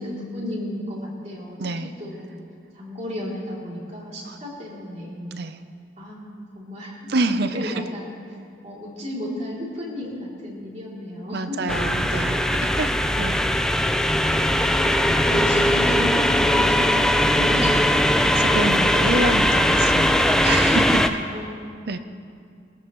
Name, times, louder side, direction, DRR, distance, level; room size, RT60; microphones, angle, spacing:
voice 1, 0.0-2.3 2.7-5.3 6.0-7.1 7.5-8.2 8.6-11.7 14.4-18.2 21.3-22.0, left 1 dB, 40° right, -5 dB, 3.1 m, -34 dB
voice 2, 1.6-1.9 4.3-4.4 5.3-5.6 7.1-7.7 11.3-13.4 18.4-21.2 21.9-22.0, right 2 dB, 55° right, 10 dB, 0.7 m, -27 dB
sound 1, 11.7-21.1, left 1 dB, 5° left, 0.4 m, -20 dB
21.0 x 14.0 x 3.2 m, 2.3 s
head